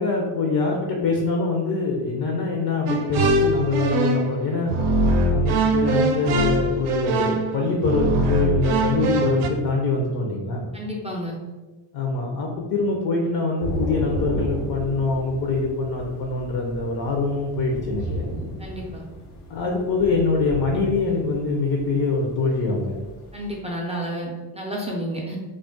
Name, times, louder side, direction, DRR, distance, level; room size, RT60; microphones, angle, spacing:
voice 1, 0.0-4.7 5.3-10.7 11.9-18.2 19.5-23.0, left 3 dB, 50° left, 0 dB, 0.5 m, -24 dB
sound 1, 2.9-4.4 4.7-9.5, right 2 dB, 80° right, 0.5 m, -22 dB
voice 2, 10.7-11.4 18.6-19.0 23.3-25.4, equal, 15° right, -2 dB, 0.3 m, -31 dB
Thunder / Rain, 13.6-23.6, equal, 85° left, 0.8 m, -33 dB
2.4 x 2.0 x 3.7 m, 1.2 s
cardioid pair, 110°, 49 cm